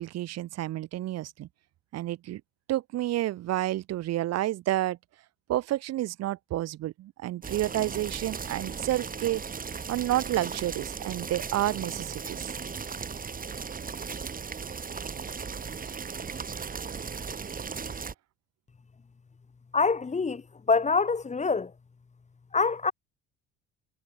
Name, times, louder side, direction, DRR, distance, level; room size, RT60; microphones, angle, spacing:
voice 1, 0.0-1.5 1.9-2.4 2.7-5.0 5.5-9.4 9.9-12.5, right 14 dB, 55° right, 2.3 m, -30 dB
sound 1, 7.4-18.1, right 5 dB, 25° right, 2.4 m, -37 dB
voice 2, 19.7-21.7 22.5-22.9, left 4 dB, 20° left, 1.9 m, -25 dB
hypercardioid pair, 60°, 31 cm